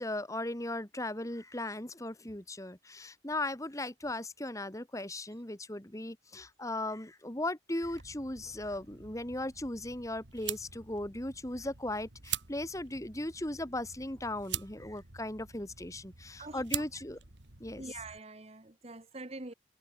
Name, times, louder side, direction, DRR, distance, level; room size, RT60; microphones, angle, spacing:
voice 1, 0.0-17.2 17.6-17.8, left 1 dB, 20° left, 2.1 m, -37 dB
sound 1, 7.8-18.2, right 11 dB, 85° right, 2.9 m, -44 dB
voice 2, 17.8-19.5, right 2 dB, 35° right, 1.6 m, -45 dB
head